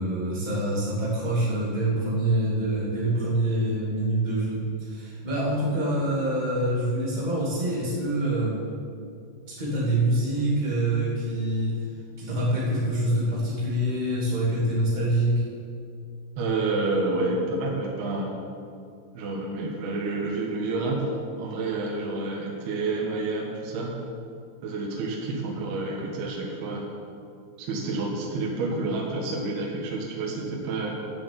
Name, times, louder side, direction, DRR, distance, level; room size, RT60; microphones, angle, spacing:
voice 1, 0.0-8.6 9.5-11.7 12.2-15.4, right 1 dB, 25° right, -7 dB, 0.9 m, -25 dB
voice 2, 16.4-18.3 19.1-21.0 21.4-23.9 24.6-26.9 27.6-31.0, right 3 dB, 65° right, -2 dB, 3.2 m, -29 dB
12.0 x 7.3 x 8.3 m, 2.3 s
omnidirectional pair, 5.2 m